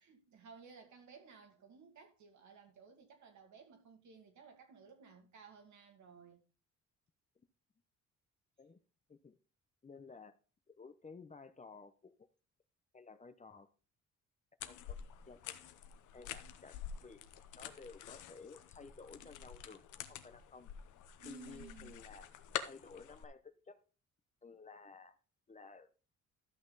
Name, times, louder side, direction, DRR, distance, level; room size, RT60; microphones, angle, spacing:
voice 1, 0.0-6.4 14.6-14.7 21.2-21.9, right 5 dB, 70° right, 2.4 m, -57 dB
voice 2, 9.8-10.4 10.8-12.1 12.9-13.7 14.6-15.0 15.3-15.5 16.1-17.2 17.6-19.8 20.1-20.7 21.2-22.3 22.6-23.8 24.4-25.2 25.5-25.9, left 4 dB, 25° left, 0.8 m, -54 dB
sound 1, 14.6-23.2, left 9 dB, 80° left, 0.9 m, -47 dB
13.0 x 6.0 x 4.0 m
cardioid pair, 90°, 30 cm